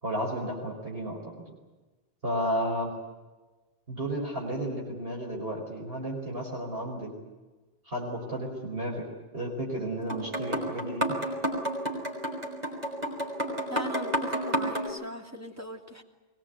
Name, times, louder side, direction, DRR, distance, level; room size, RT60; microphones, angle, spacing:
voice 1, 0.0-1.3 2.2-2.9 3.9-7.1 7.9-9.1 9.3-11.0, equal, 55° right, -1 dB, 5.3 m, -32 dB
Rattle Drum, 10.1-14.9, equal, 35° right, 5.8 m, -31 dB
voice 2, 13.6-16.0, equal, 15° right, 2 dB, 2.7 m, -40 dB
23.5 x 20.0 x 9.5 m, 1.2 s
omnidirectional pair, 1.2 m